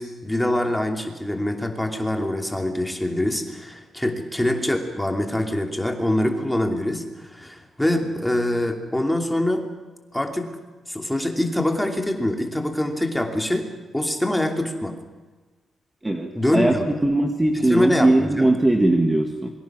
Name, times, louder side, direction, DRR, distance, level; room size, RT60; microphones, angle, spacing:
voice 1, 0.0-9.6 10.1-10.5 10.9-13.7 13.9-15.0 16.3-17.0 17.5-18.5, left 1 dB, 5° left, 3 dB, 2.8 m, -24 dB
voice 2, 16.0-16.7 17.0-19.5, right 1 dB, 10° right, 3 dB, 1.8 m, -20 dB
27.0 x 23.5 x 6.2 m, 1.3 s
wide cardioid pair, 155°, 0 cm